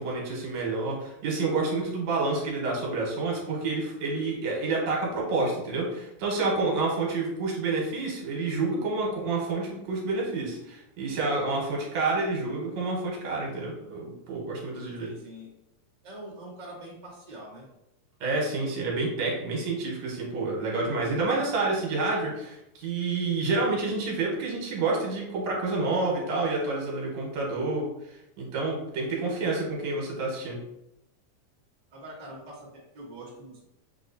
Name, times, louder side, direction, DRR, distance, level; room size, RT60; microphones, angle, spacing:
voice 1, 0.0-15.1 18.2-30.6, right 3 dB, 70° right, -2 dB, 2.2 m, -29 dB
voice 2, 15.0-15.5 16.0-17.7 29.1-29.5 31.9-33.6, right 1 dB, 40° right, -6 dB, 0.5 m, -44 dB
6.5 x 2.9 x 2.7 m, 0.87 s
omnidirectional pair, 3.4 m